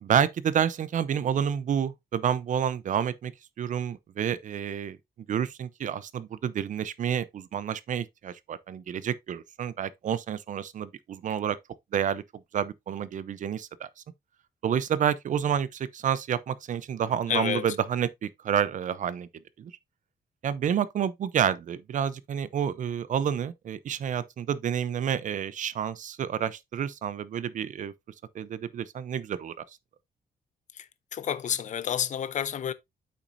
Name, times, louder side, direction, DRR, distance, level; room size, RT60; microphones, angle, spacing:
voice 1, 0.0-3.3 3.6-5.0 5.3-11.6 11.9-12.2 12.5-13.9 14.6-19.3 19.6-19.7 20.4-27.9 28.3-29.5, right 8 dB, 50° right, 0.6 m, -29 dB
voice 2, 17.3-17.7 30.7-32.7, left 9 dB, 45° left, 0.6 m, -30 dB
8.2 x 6.1 x 2.6 m
wide cardioid pair, 165°, 17 cm